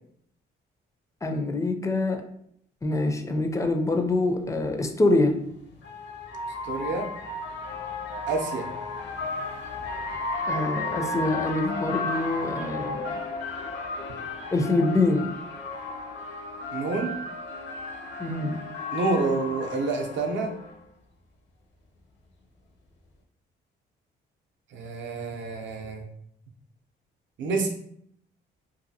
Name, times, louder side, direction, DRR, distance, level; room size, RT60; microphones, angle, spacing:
voice 1, 1.2-2.2 2.8-5.4 10.5-13.2 14.5-15.3 18.2-18.6, left 2 dB, 15° left, 5 dB, 0.4 m, -25 dB
sound 1, 3.6-3.7 5.2-20.8, left 3 dB, 65° left, 0.6 m, -34 dB
voice 2, 6.6-7.1 8.3-8.7 16.7-17.2 18.9-20.6 24.7-26.1 27.4-27.7, right 3 dB, 70° right, 4 dB, 0.6 m, -28 dB
2.6 x 2.4 x 2.6 m, 0.68 s
cardioid pair, 90°, 20 cm